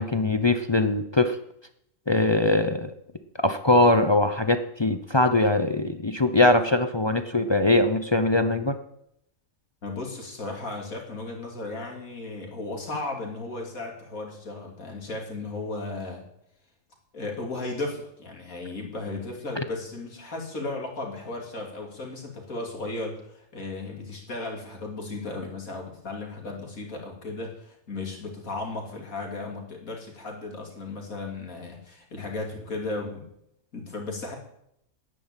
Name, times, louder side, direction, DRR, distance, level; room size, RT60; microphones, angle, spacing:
voice 1, 0.0-1.4 2.1-2.9 3.4-8.8 19.6-19.7, left 2 dB, 30° left, 9 dB, 0.5 m, -22 dB
voice 2, 9.8-16.2 17.1-33.3 33.7-34.4, left 2 dB, 75° left, 1 dB, 3.3 m, -35 dB
10.0 x 9.5 x 8.9 m, 0.76 s
omnidirectional pair, 1.5 m